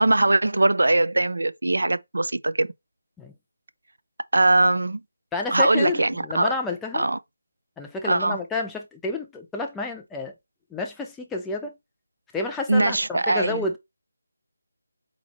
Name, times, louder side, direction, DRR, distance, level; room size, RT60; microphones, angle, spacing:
voice 1, 0.0-2.7 4.3-5.0 5.5-6.5 6.9-7.2 8.0-8.4 12.7-13.7, right 2 dB, 85° right, 0.5 m, -21 dB
voice 2, 5.3-7.1 7.8-10.3 10.7-11.7 12.3-13.8, left 3 dB, 5° left, 0.5 m, -30 dB
4.1 x 2.8 x 4.2 m
figure-of-eight pair, 170°, 0 cm